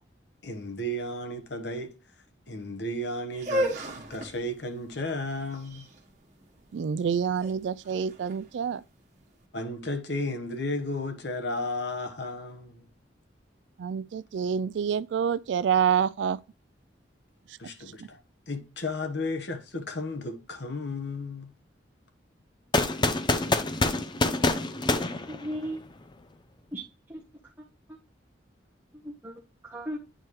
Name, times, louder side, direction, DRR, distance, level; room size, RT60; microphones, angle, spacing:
voice 1, 0.4-1.9 2.5-3.7 3.9-5.9 9.5-12.9 17.6-18.2 18.5-21.5, left 1 dB, 65° left, 1.2 m, -33 dB
sound 1, 3.3-9.2, equal, 40° right, 1.5 m, -35 dB
voice 2, 6.7-8.8 13.8-16.4 18.0-18.1, right 7 dB, 70° right, 0.3 m, -27 dB
sound 2, 22.7-25.9, left 2 dB, 25° left, 0.5 m, -26 dB
voice 3, 25.3-25.8 26.7-27.2 27.9-28.0 29.0-30.0, equal, 10° right, 1.1 m, -37 dB
9.0 x 4.5 x 3.1 m
head